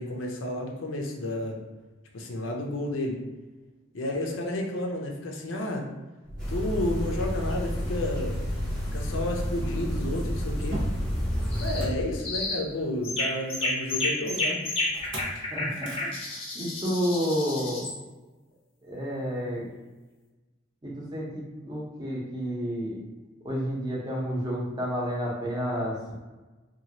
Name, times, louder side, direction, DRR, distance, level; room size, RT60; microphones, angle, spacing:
voice 1, 0.0-1.6 2.1-3.2 3.9-5.8 6.5-8.3 8.9-10.8 11.6-14.6, left 1 dB, 85° left, 1 dB, 0.6 m, -31 dB
Motor vehicle (road), 6.2-12.7 14.9-15.4 15.7-16.1, equal, 65° right, 0.8 m, -31 dB
sound 1, 6.4-11.9, equal, 5° left, 1.0 m, -38 dB
sound 2, 11.5-11.9 12.2-12.6 13.0-18.0, left 2 dB, 30° left, 0.6 m, -31 dB
voice 2, 15.5-16.1 16.5-17.9 18.8-19.7 20.8-23.0 23.4-26.1, equal, 20° right, -4 dB, 0.7 m, -30 dB
2.9 x 2.3 x 2.8 m, 1.2 s
head